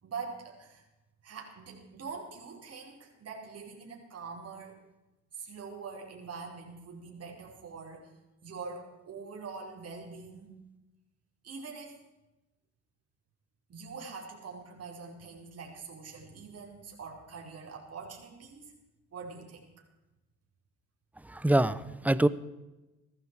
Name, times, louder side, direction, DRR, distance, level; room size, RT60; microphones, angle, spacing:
voice 1, 0.0-0.8 1.2-4.8 5.3-8.1 8.4-10.6 11.4-12.0 13.7-18.7 19.1-19.7, right 5 dB, 55° right, 0 dB, 4.8 m, -44 dB
voice 2, 21.3-22.3, right 1 dB, 5° right, 15 dB, 0.8 m, -25 dB
17.0 x 14.5 x 4.8 m, 1.0 s
cardioid pair, 90°, 30 cm